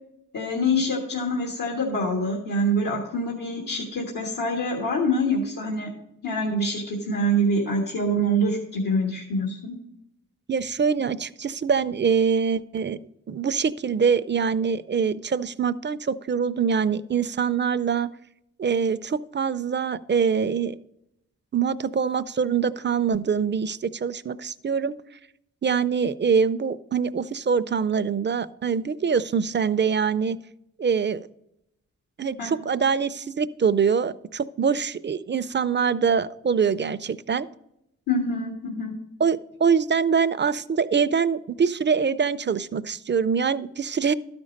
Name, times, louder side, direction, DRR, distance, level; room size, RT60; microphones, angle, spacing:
voice 1, 0.3-5.9 6.2-9.7 32.4-32.5 38.1-39.0, equal, 85° left, 0 dB, 1.5 m, -25 dB
voice 2, 10.5-13.0 13.3-18.1 18.6-20.7 21.5-24.9 25.6-30.4 30.8-31.3 32.2-37.5 39.2-44.1, right 6 dB, 35° right, 16 dB, 0.4 m, -24 dB
12.0 x 5.2 x 5.1 m, 0.82 s
cardioid pair, 45°, 33 cm